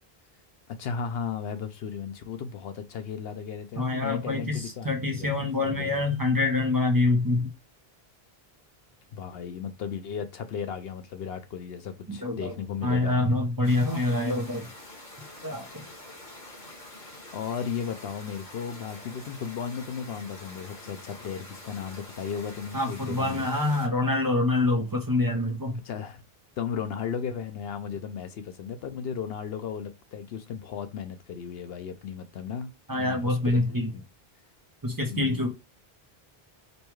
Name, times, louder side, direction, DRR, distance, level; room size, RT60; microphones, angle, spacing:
voice 1, 0.7-6.1 9.1-13.4 17.3-23.5 25.8-26.2 26.6-33.6 33.9-34.0 35.1-35.5, left 7 dB, 75° left, 0.8 m, -35 dB
voice 2, 3.8-7.5 12.1-12.5 12.8-14.7 15.4-15.9 22.7-25.8 32.9-33.9 34.8-35.5, left 2 dB, 25° right, 0.7 m, -26 dB
sound 1, 13.6-23.9, left 1 dB, 45° left, 1.6 m, -46 dB
5.3 x 2.3 x 3.0 m
omnidirectional pair, 1.0 m